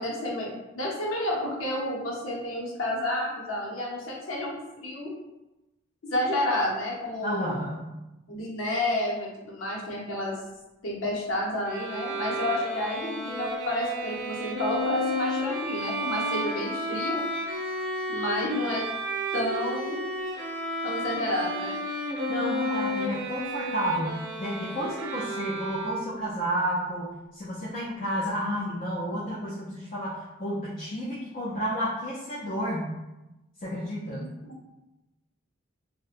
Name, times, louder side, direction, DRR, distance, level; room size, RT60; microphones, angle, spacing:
voice 1, 0.0-5.1 6.0-7.6 8.3-10.4 10.8-17.2 18.1-18.9 19.3-20.0 20.8-21.8 34.1-34.6, left 1 dB, 75° left, -3 dB, 0.7 m, -30 dB
voice 2, 7.2-7.9 22.3-32.9 33.6-34.3, equal, 40° left, -6 dB, 0.4 m, -31 dB
Bowed string instrument, 11.7-26.3, equal, 60° right, 0.4 m, -32 dB
2.6 x 2.1 x 2.4 m, 1.0 s
head